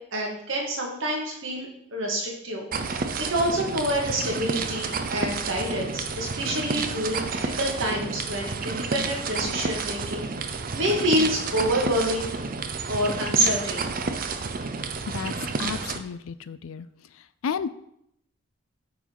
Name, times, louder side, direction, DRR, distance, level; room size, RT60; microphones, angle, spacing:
voice 1, 0.1-12.3 12.9-13.9, right 1 dB, 65° right, -1 dB, 2.0 m, -27 dB
sound 1, 2.7-16.0, right 4 dB, 40° right, 0.5 m, -30 dB
voice 2, 15.6-16.9 17.4-17.7, left 6 dB, 75° left, 15 dB, 0.4 m, -32 dB
9.2 x 3.8 x 4.7 m, 0.76 s
head